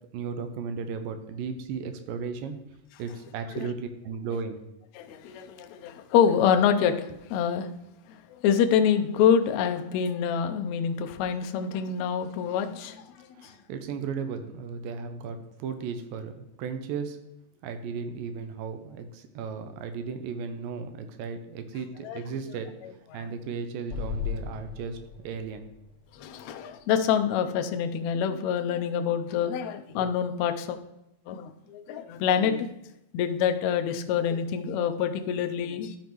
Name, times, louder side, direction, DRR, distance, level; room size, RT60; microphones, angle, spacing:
voice 1, 0.1-2.6 3.0-4.6 13.3-17.2 17.6-22.7 23.1-25.0 25.2-25.7, right 5 dB, 85° right, 8 dB, 2.3 m, -35 dB
voice 2, 4.9-7.7 8.1-13.5 22.0-22.2 23.1-23.3 26.1-30.8 31.3-32.7 33.1-36.0, left 8 dB, 85° left, 7 dB, 1.6 m, -26 dB
Explosion, 23.9-27.2, left 7 dB, 15° left, 3.2 m, -37 dB
12.5 x 5.2 x 3.0 m, 0.87 s
omnidirectional pair, 4.0 m